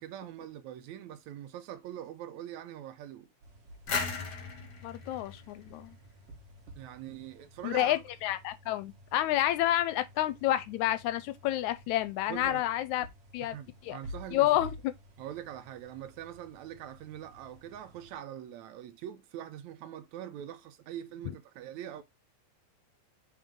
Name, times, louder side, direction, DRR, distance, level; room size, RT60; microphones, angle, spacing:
voice 1, 0.0-3.3 6.8-8.0 12.3-12.6 13.4-14.5 15.2-22.0, right 11 dB, 75° right, 1.9 m, -43 dB
sound 1, 3.4-18.2, right 1 dB, 55° right, 2.3 m, -52 dB
sound 2, 3.9-6.6, left 5 dB, 50° left, 1.3 m, -37 dB
voice 2, 4.8-6.0 7.6-13.1 13.3-13.6 13.8-14.0 14.3-14.7, left 14 dB, 80° left, 1.8 m, -29 dB
7.8 x 4.0 x 3.6 m
omnidirectional pair, 3.5 m